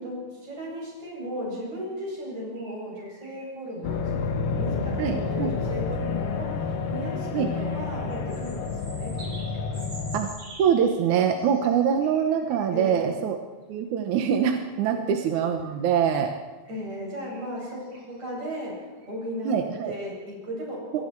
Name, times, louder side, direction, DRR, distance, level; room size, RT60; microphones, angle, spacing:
voice 1, 0.0-9.9 12.7-13.0 14.9-15.0 16.7-21.0, equal, 45° right, -3 dB, 9.4 m, -36 dB
sound 1, 1.1-1.2 2.0-3.7 4.3-4.4 6.8-13.1 14.1-14.2 14.7-14.8 16.6-20.1, right 2 dB, 30° right, 5.2 m, -49 dB
sound 2, 3.8-10.2, left 5 dB, 55° left, 1.7 m, -29 dB
voice 2, 5.0-5.5 7.3-7.5 10.1-10.3 10.6-13.4 13.7-16.3 19.5-19.9 20.9-21.0, right 8 dB, 65° right, 5 dB, 2.1 m, -24 dB
28.0 x 22.5 x 4.6 m, 1.3 s
omnidirectional pair, 4.4 m